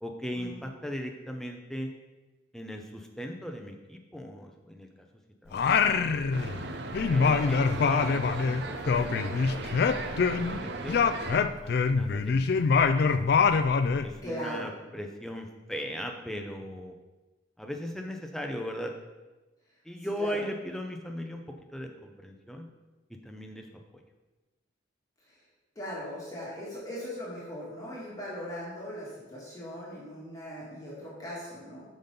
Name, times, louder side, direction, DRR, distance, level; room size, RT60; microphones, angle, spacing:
voice 1, 0.0-1.9 2.5-5.1 5.4-6.0 6.4-6.5 7.1-10.0 10.3-11.0 11.6-12.5 14.0-16.9 17.6-18.9 19.8-21.4 21.7-22.7 23.2-23.7 23.9-24.0, equal, ahead, 2 dB, 0.6 m, -38 dB
Singing, 5.5-6.7 6.9-10.6 10.9-14.1, left 5 dB, 55° left, 0.3 m, -24 dB
sound 1, 6.3-11.4, right 3 dB, 55° right, 0.6 m, -37 dB
voice 2, 7.5-7.8 14.2-14.7 20.0-20.4 25.8-31.8, equal, 20° left, -7 dB, 1.8 m, -39 dB
5.9 x 5.2 x 5.4 m, 1.1 s
head